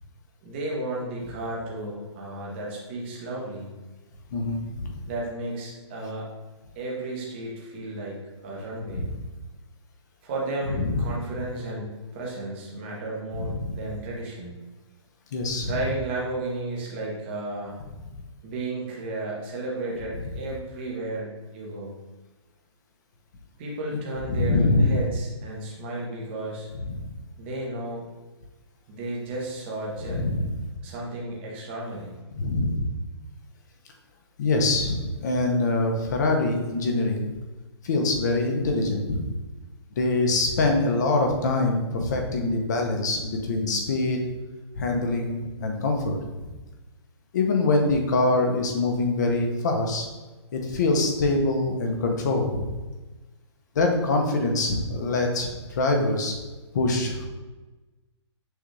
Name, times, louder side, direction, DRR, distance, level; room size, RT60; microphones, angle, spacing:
voice 1, 0.4-3.7 5.1-6.3 6.7-9.1 10.2-14.5 15.6-17.8 18.4-21.9 23.6-26.7 27.4-28.0 28.9-30.2 30.8-32.1, right 2 dB, 25° right, -3 dB, 0.8 m, -33 dB
voice 2, 4.3-5.0 8.9-9.1 10.7-11.1 13.3-13.8 15.3-15.7 24.3-24.9 26.8-27.1 30.1-30.5 32.4-32.9 34.4-37.3 37.8-39.3 39.9-44.2 44.8-46.5 47.3-50.1 50.5-52.7 53.7-56.4 56.7-57.3, left 2 dB, 40° left, 2 dB, 0.7 m, -24 dB
6.3 x 2.4 x 3.2 m, 1.2 s
hypercardioid pair, 170°, 15 cm